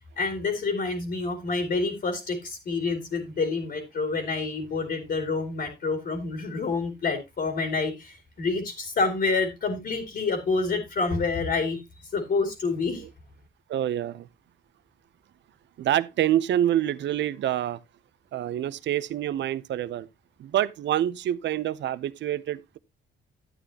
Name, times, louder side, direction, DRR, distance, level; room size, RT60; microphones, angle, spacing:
voice 1, 0.2-11.8 12.1-13.0, left 4 dB, 55° left, 2.5 m, -28 dB
voice 2, 13.7-14.3 15.8-17.8 18.3-20.1 20.4-22.8, right 12 dB, 65° right, 0.6 m, -26 dB
11.0 x 8.9 x 2.8 m
cardioid pair, 90°, 20 cm